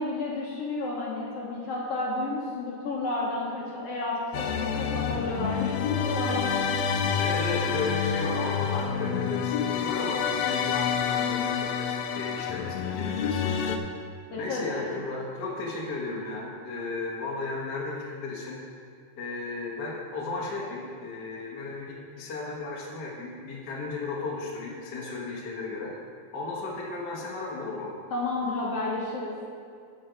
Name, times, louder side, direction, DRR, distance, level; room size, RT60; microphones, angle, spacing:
voice 1, 0.0-7.2 14.3-15.0 28.1-29.3, left 2 dB, 60° left, -4 dB, 2.1 m, -31 dB
sound 1, 4.3-13.8, left 7 dB, 80° left, 1.8 m, -28 dB
voice 2, 7.2-13.7 14.4-18.6 19.2-25.9 26.3-27.9, left 3 dB, 40° left, -3 dB, 1.8 m, -34 dB
14.0 x 5.5 x 5.1 m, 2.3 s
omnidirectional pair, 3.3 m